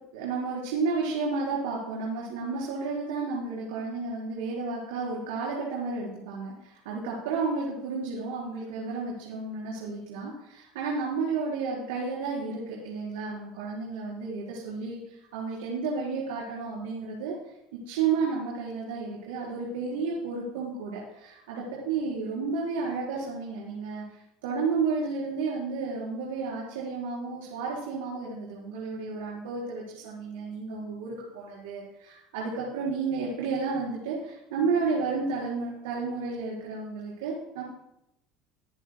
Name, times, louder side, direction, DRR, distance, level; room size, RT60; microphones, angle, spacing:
voice 1, 0.1-17.5 17.9-37.6, right 4 dB, 90° right, -5 dB, 4.3 m, -32 dB
23.5 x 10.0 x 2.2 m, 0.85 s
supercardioid pair, 100°, 0 cm